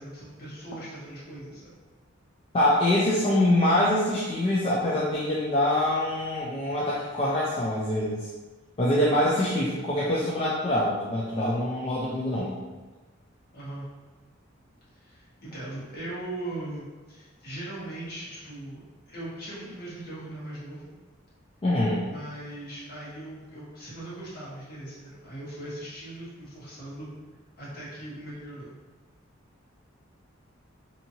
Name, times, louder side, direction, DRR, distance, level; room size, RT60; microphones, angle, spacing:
voice 1, 0.0-1.7 9.0-9.4 13.5-13.9 15.0-20.9 22.1-27.1 27.6-28.7, right 1 dB, 50° left, -8 dB, 1.1 m, -39 dB
voice 2, 2.5-8.3 8.8-12.6 21.6-22.0, left 1 dB, 30° left, -6 dB, 0.3 m, -24 dB
2.7 x 2.7 x 2.6 m, 1.3 s
head